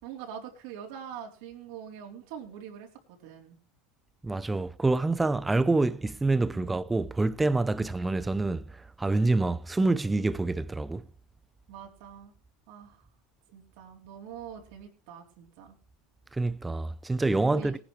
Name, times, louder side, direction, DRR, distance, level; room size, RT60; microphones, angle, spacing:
voice 1, 0.0-2.9 3.2-3.6 6.5-6.7 7.8-7.9 11.7-12.3 12.7-13.0 13.5-15.7 17.5-17.8, right 8 dB, 75° right, 3.7 m, -44 dB
voice 2, 4.2-11.0 16.3-17.8, right 2 dB, 15° right, 0.8 m, -27 dB
18.5 x 10.5 x 3.3 m
supercardioid pair, 95°, 0 cm